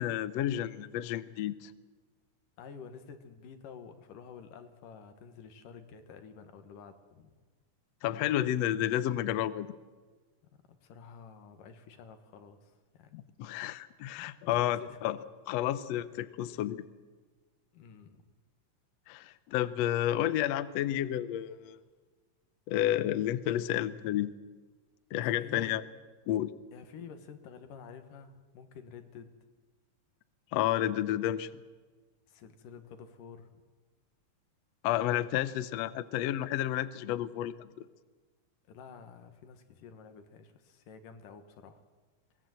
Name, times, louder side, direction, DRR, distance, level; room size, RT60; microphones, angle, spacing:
voice 1, 0.0-1.7 8.0-9.7 13.1-15.2 15.5-16.8 19.1-21.8 22.7-24.3 25.1-25.8 26.3-26.5 30.5-31.5 34.8-37.8, left 12 dB, 70° left, 14 dB, 1.7 m, -31 dB
voice 2, 2.6-7.3 10.8-13.3 14.5-15.0 17.7-18.3 25.3-25.8 26.7-29.3 32.3-33.6 38.7-41.8, left 6 dB, 90° left, 8 dB, 3.1 m, -50 dB
23.5 x 18.5 x 7.8 m, 1.4 s
omnidirectional pair, 3.7 m